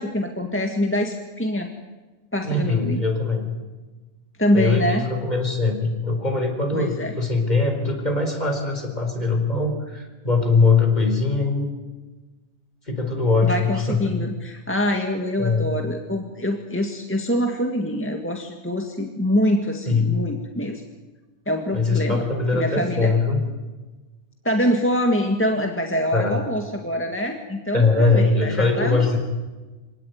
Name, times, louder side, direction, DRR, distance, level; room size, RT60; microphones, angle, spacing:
voice 1, 0.0-1.7 2.3-3.0 4.4-5.0 6.7-7.1 13.4-20.8 21.4-22.2 22.5-23.1 24.4-29.2, equal, 10° left, 3 dB, 1.8 m, -24 dB
voice 2, 2.4-3.5 4.5-11.7 12.9-14.2 15.4-15.7 19.9-20.1 21.7-23.4 26.1-26.4 27.7-29.2, left 3 dB, 35° left, 4 dB, 4.6 m, -21 dB
25.5 x 18.0 x 9.4 m, 1.2 s
omnidirectional pair, 1.2 m